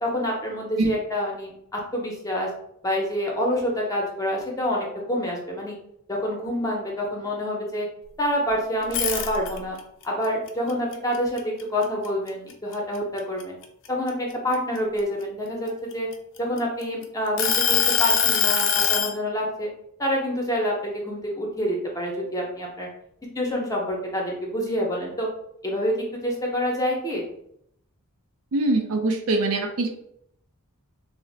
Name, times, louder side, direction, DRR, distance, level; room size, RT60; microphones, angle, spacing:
voice 1, 0.0-2.5 2.8-5.8 6.1-7.9 8.2-9.8 10.0-13.6 13.9-16.1 16.4-19.7 20.0-22.9 23.3-25.3 25.6-27.2, equal, 15° left, -2 dB, 0.6 m, -27 dB
sound 1, 8.8-9.8 10.2-12.1 12.5-12.7 13.2-15.0 15.7-16.8 17.4-19.1, left 7 dB, 55° left, 0.4 m, -22 dB
voice 2, 28.5-29.9, right 2 dB, 65° right, 4 dB, 0.5 m, -23 dB
2.5 x 2.0 x 3.8 m, 0.72 s
head